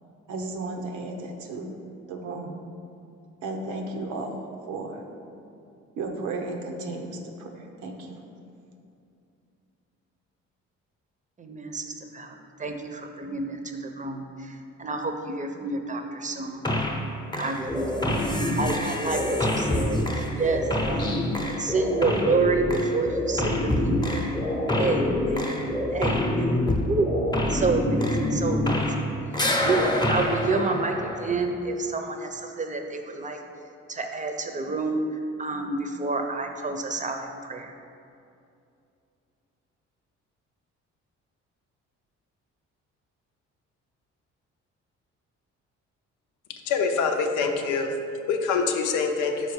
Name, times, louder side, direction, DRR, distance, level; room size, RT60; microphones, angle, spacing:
voice 1, 0.3-1.7 2.1-2.5 3.4-5.0 6.0-8.2, right 2 dB, 85° right, 3 dB, 0.8 m, -34 dB
voice 2, 11.4-11.8 12.1-16.7 17.4-18.1 18.5-21.1 21.6-24.0 24.7-25.6 25.9-26.2 26.8-27.1 27.5-28.9 29.6-33.4 33.9-35.0 35.4-37.7, right 3 dB, 25° right, 5 dB, 0.6 m, -28 dB
sound 1, 16.6-17.1 17.3-29.1 29.3-31.5, left 1 dB, 15° left, 0.8 m, -26 dB
voice 3, 46.6-49.5, left 4 dB, 80° left, 4 dB, 0.6 m, -25 dB
5.4 x 4.2 x 4.8 m, 2.6 s
supercardioid pair, 75°, 30 cm